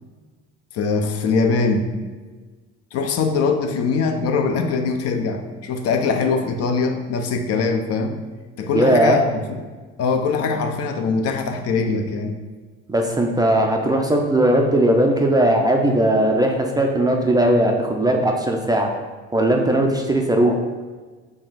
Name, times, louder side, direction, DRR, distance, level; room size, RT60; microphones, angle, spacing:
voice 1, 0.7-1.9 2.9-8.2 8.6-9.6 10.0-12.4, left 4 dB, 50° left, 6 dB, 0.5 m, -22 dB
voice 2, 8.7-9.2 12.9-18.9 19.3-20.5, right 1 dB, 15° right, 1 dB, 0.3 m, -18 dB
3.7 x 2.3 x 4.0 m, 1.4 s
hypercardioid pair, 75°, 32 cm